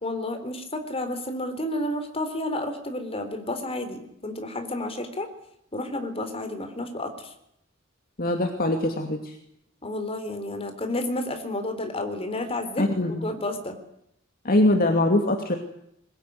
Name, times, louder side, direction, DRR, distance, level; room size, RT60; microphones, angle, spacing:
voice 1, 0.0-5.3 5.7-7.3 9.8-13.8, left 1 dB, 30° left, 7 dB, 4.0 m, -31 dB
voice 2, 8.2-9.4 12.8-13.3 14.4-15.6, left 1 dB, 45° left, 4 dB, 2.5 m, -23 dB
22.0 x 21.0 x 9.7 m, 0.77 s
head